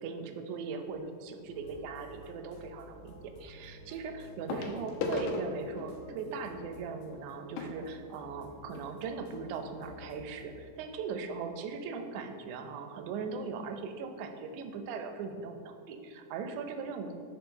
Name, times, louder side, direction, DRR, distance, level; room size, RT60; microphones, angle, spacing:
voice 1, 0.0-17.2, right 5 dB, 80° right, 6 dB, 1.9 m, -39 dB
sound 1, 0.9-1.2 2.9-3.0 4.5-8.9 9.7-9.8 10.0-10.2 10.7-10.8, left 3 dB, 85° left, 2.1 m, -39 dB
sound 2, 1.5-10.7, equal, 70° left, 2.0 m, -52 dB
4.5 x 4.4 x 5.3 m, 2.2 s
omnidirectional pair, 3.6 m